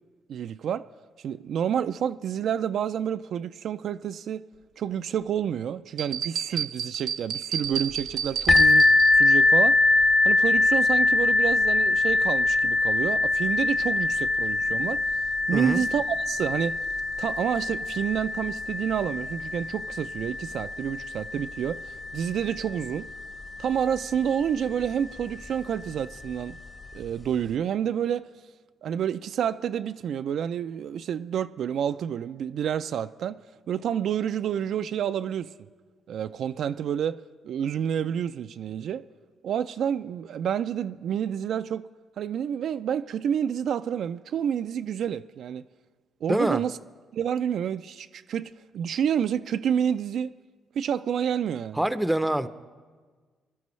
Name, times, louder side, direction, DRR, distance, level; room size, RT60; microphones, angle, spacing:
voice 1, 0.3-0.9 1.2-4.5 4.8-9.8 10.2-15.0 15.5-16.8 17.2-23.1 23.6-26.6 26.9-28.3 28.8-33.4 33.7-35.5 36.1-37.2 37.4-39.0 39.4-41.9 42.2-45.6 46.2-46.7 47.1-50.3 50.7-51.8, right 8 dB, 65° right, 0.3 m, -29 dB
sound 1, 6.0-9.3, right 9 dB, 85° right, 0.8 m, -31 dB
sound 2, 8.5-24.0 24.8-24.9 25.4-25.5, left 2 dB, 30° left, 1.2 m, -23 dB
voice 2, 15.5-15.8 46.3-46.6 51.7-52.5, right 1 dB, 5° right, 0.6 m, -25 dB
22.5 x 12.5 x 3.2 m
cardioid pair, 90°, 0 cm